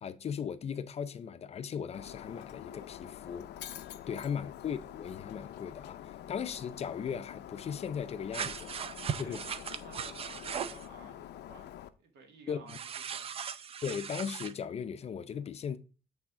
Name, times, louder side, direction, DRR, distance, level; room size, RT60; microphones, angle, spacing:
voice 1, 0.0-3.5 4.1-8.7 9.1-9.4 12.5-12.8 13.8-15.8, left 7 dB, 40° left, 0.5 m, -37 dB
Shatter, 1.9-11.9, left 11 dB, 90° left, 0.6 m, -46 dB
voice 2, 4.1-4.5 9.2-13.4, right 3 dB, 85° right, 2.1 m, -54 dB
sound 1, 8.3-10.9 12.7-14.5, right 7 dB, 35° right, 0.4 m, -38 dB
8.6 x 3.5 x 4.7 m
cardioid pair, 160°, 17 cm